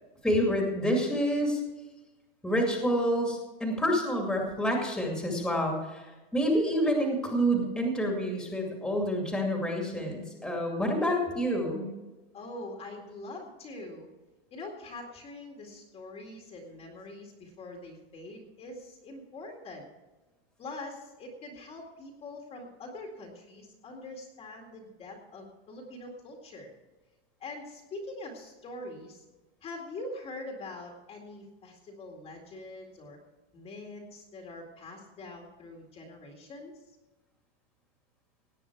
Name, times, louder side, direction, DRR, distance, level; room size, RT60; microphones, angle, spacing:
voice 1, 0.2-1.6 2.4-11.9, equal, ahead, 0 dB, 2.4 m, -28 dB
voice 2, 12.3-14.1 14.5-19.9 20.6-26.7 27.4-29.2 29.6-33.2 33.5-36.8, left 2 dB, 20° left, 1 dB, 2.2 m, -43 dB
18.0 x 9.5 x 4.6 m, 1.2 s
supercardioid pair, 170°, 31 cm